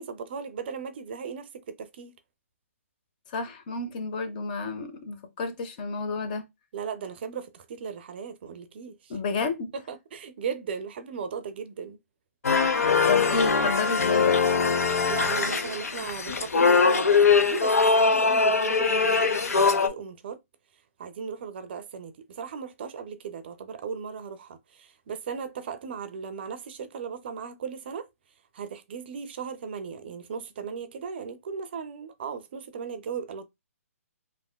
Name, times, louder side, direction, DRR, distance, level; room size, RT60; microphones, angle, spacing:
voice 1, 0.0-2.1 6.7-9.1 9.7-12.0 15.0-20.4 21.0-28.1 28.5-33.5, right 6 dB, 45° right, 0.4 m, -37 dB
voice 2, 3.3-6.4 9.1-9.7 13.1-14.4, left 4 dB, 35° left, 0.5 m, -30 dB
sound 1, 12.4-19.9, left 5 dB, 90° left, 0.5 m, -22 dB
3.3 x 2.5 x 2.2 m
hypercardioid pair, 150°, 8 cm